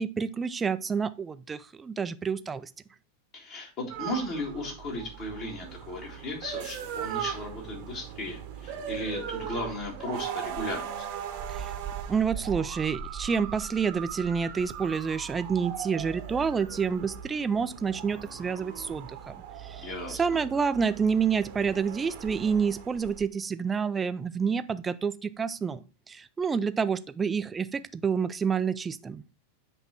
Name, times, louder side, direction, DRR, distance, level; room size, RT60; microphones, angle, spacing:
voice 1, 0.0-2.7 11.5-11.7 12.1-19.4 19.6-29.2, right 6 dB, 15° right, 12 dB, 0.4 m, -28 dB
voice 2, 3.3-11.1 19.8-20.2, left 1 dB, 40° left, 0 dB, 2.0 m, -36 dB
sound 1, 3.9-23.3, right 9 dB, 45° right, 0.9 m, -39 dB
8.0 x 3.3 x 4.2 m, 0.33 s
figure-of-eight pair, 90°, 0 cm